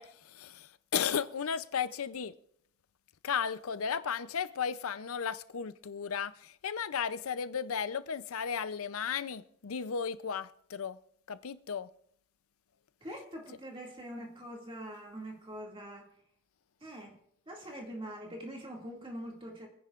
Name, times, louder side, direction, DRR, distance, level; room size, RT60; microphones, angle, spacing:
voice 1, 0.0-2.3 3.2-11.0 11.3-11.9, left 7 dB, 85° left, 0.6 m, -35 dB
voice 2, 13.0-16.1 16.8-17.2 17.5-19.7, equal, 25° right, 2.2 m, -43 dB
26.0 x 10.0 x 2.5 m
head